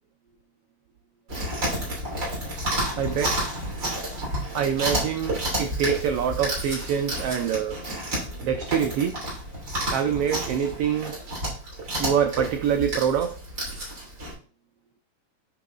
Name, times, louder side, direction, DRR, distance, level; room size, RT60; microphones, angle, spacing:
Chewing mastication, 1.3-14.3, right 1 dB, 35° right, 3.5 m, -30 dB
voice 1, 3.0-3.5 4.5-7.8 8.4-9.2 9.9-11.2 12.0-13.4, right 8 dB, 90° right, 7 dB, 1.3 m, -25 dB
9.2 x 5.8 x 2.3 m, 0.41 s
omnidirectional pair, 3.4 m